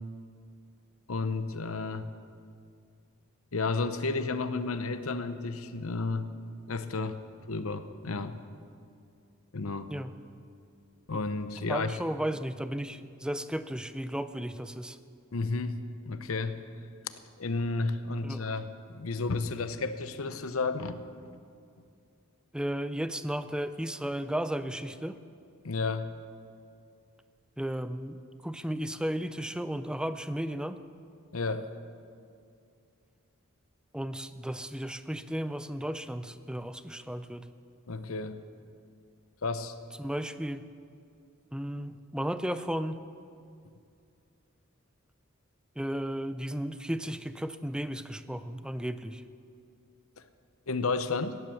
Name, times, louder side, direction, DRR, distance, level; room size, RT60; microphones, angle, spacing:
voice 1, 1.1-2.1 3.5-6.3 6.7-7.2 7.5-8.4 9.5-9.9 11.1-11.9 15.3-16.6 17.4-21.4 25.6-26.1 31.3-31.7 37.9-38.4 39.4-39.7 50.7-51.4, left 3 dB, 70° left, 11 dB, 0.9 m, -32 dB
voice 2, 11.7-15.0 18.2-18.5 22.5-25.2 27.6-30.8 33.9-37.5 40.0-40.7 41.5-43.0 45.8-49.2, equal, 5° right, 11 dB, 0.5 m, -34 dB
17.0 x 11.0 x 7.1 m, 2.4 s
head